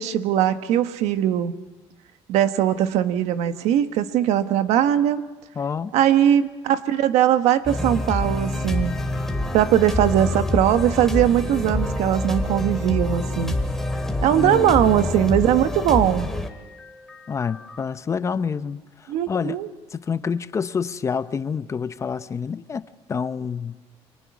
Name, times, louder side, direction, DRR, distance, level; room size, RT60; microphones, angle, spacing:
voice 1, 0.0-1.5 2.3-5.2 5.9-8.9 9.5-13.5 14.2-16.3 19.1-19.7, right 11 dB, 90° right, 1.4 m, -20 dB
voice 2, 5.6-5.9 14.3-15.5 17.3-19.6 19.9-23.8, left 6 dB, 25° left, 0.7 m, -28 dB
sound 1, 7.7-17.8, left 1 dB, 5° left, 2.1 m, -27 dB
30.0 x 25.0 x 6.2 m
cardioid pair, 145°, 11 cm